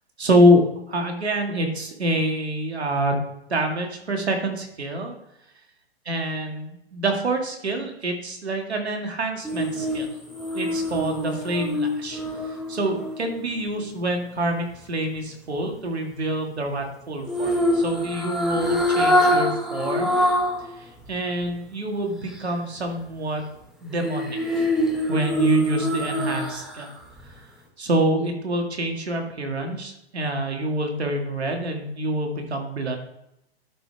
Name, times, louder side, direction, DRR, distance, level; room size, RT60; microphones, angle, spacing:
voice 1, 0.2-0.6 0.9-3.2 3.5-5.1 6.1-10.1 10.5-12.2 12.5-20.2 20.7-23.5 23.8-24.7 25.1-26.9 27.2-27.5 27.8-33.0, right 1 dB, 90° right, 3 dB, 2.0 m, -26 dB
sound 1, 9.4-13.7 17.3-20.6 21.0-21.1 23.9-26.8 27.2-27.3, equal, ahead, 1.4 m, -24 dB
11.5 x 5.1 x 3.4 m, 0.81 s
hypercardioid pair, 130°, 32 cm